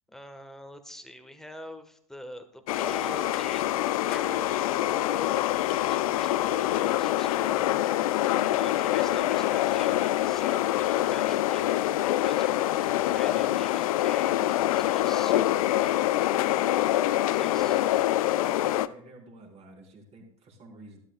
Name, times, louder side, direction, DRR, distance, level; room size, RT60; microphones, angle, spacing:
voice 1, 0.1-3.7 4.1-5.4 5.9-7.8 8.6-10.0 10.2-11.8 12.2-15.9 17.2-17.8, left 1 dB, ahead, 7 dB, 1.4 m, -44 dB
sound 1, 2.7-18.9, left 14 dB, 65° left, 0.5 m, -25 dB
voice 2, 17.1-17.6 18.3-21.0, right 2 dB, 35° right, 0 dB, 3.9 m, -50 dB
12.5 x 12.5 x 2.4 m, 0.67 s
hypercardioid pair, 90°, 20 cm